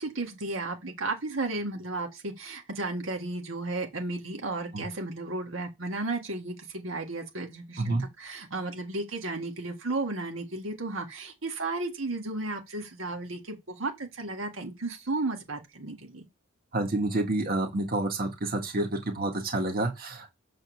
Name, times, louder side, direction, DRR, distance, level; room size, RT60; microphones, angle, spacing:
voice 1, 0.0-16.3, right 2 dB, 75° right, 1.7 m, -34 dB
voice 2, 16.7-20.3, right 2 dB, 50° right, 1.8 m, -29 dB
7.0 x 4.1 x 6.3 m
head